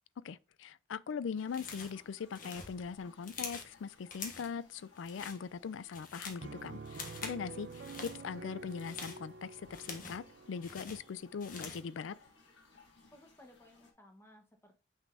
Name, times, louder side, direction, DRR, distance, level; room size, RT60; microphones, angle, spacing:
voice 1, 0.2-12.2, left 6 dB, 85° left, 0.4 m, -41 dB
sound 1, 1.4-13.9, left 3 dB, 70° left, 1.8 m, -63 dB
sound 2, 1.5-2.0 2.3-3.7 4.1-4.6 5.0-5.4 5.8-6.5 6.9-7.4 7.7-8.2 8.7-10.3 10.6-11.9, left 4 dB, 45° left, 1.4 m, -46 dB
Piano, 6.4-11.9, right 4 dB, 60° right, 0.5 m, -49 dB
voice 2, 13.1-14.7, left 1 dB, 15° left, 1.1 m, -59 dB
6.5 x 6.0 x 2.6 m
head